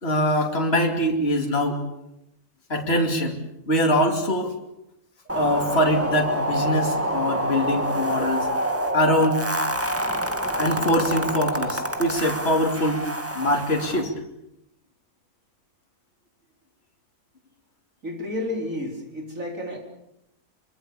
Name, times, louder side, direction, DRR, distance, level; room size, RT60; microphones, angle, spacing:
voice 1, 0.0-1.8 2.7-3.4 3.7-4.5 5.3-8.5 8.9-9.4 10.6-13.1 13.3-14.1, equal, 40° left, 1 dB, 3.1 m, -23 dB
sound 1, 5.3-14.0, right 1 dB, 10° right, 2.0 m, -27 dB
voice 2, 18.0-19.8, left 1 dB, 60° right, 2 dB, 4.7 m, -31 dB
24.5 x 24.5 x 7.1 m, 0.83 s
omnidirectional pair, 1.6 m